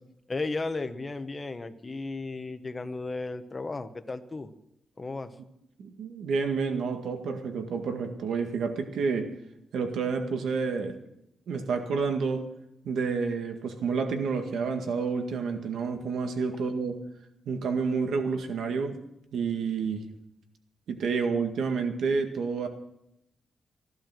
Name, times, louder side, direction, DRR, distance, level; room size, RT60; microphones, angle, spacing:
voice 1, 0.3-4.5 5.0-5.3, left 3 dB, 25° left, 9 dB, 1.0 m, -34 dB
voice 2, 5.8-9.3 9.7-11.0 11.5-12.4 12.9-17.0 17.5-19.0 19.3-20.1 20.9-22.7, right 5 dB, 80° right, 5 dB, 1.9 m, -29 dB
16.0 x 12.0 x 6.2 m, 0.82 s
wide cardioid pair, 150°, 0 cm